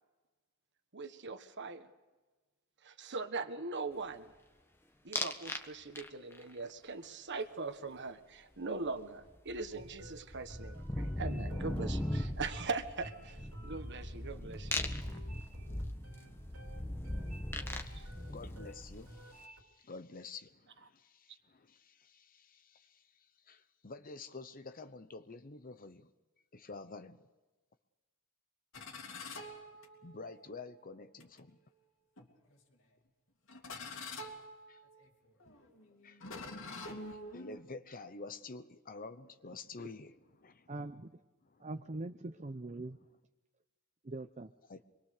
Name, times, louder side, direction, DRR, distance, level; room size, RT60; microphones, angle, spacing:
voice 1, 0.9-1.9 2.8-4.3 5.0-14.8 17.7-18.0, right 4 dB, 55° right, 9 dB, 1.4 m, -41 dB
sound 1, 5.1-5.6 6.0-6.4 8.9-9.0 9.2-19.3, left 1 dB, 10° left, 1.3 m, -39 dB
Cute Music, 9.7-19.6, right 1 dB, 85° right, 3.4 m, -52 dB
voice 2, 17.7-26.1 26.5-27.3 30.0-31.6 33.9-34.1 34.7-34.8 36.0-36.4 37.1-40.7 41.5-41.7 44.7-44.8, left 3 dB, 40° left, 10 dB, 0.9 m, -49 dB
sound 2, 28.7-30.4 31.2-31.4 32.2-32.7 33.5-37.6, left 2 dB, 65° left, 2.9 m, -47 dB
voice 3, 40.7-41.2 41.6-43.0 44.0-44.5, right 2 dB, 35° right, 8 dB, 0.7 m, -42 dB
25.5 x 22.0 x 6.7 m, 1.2 s
head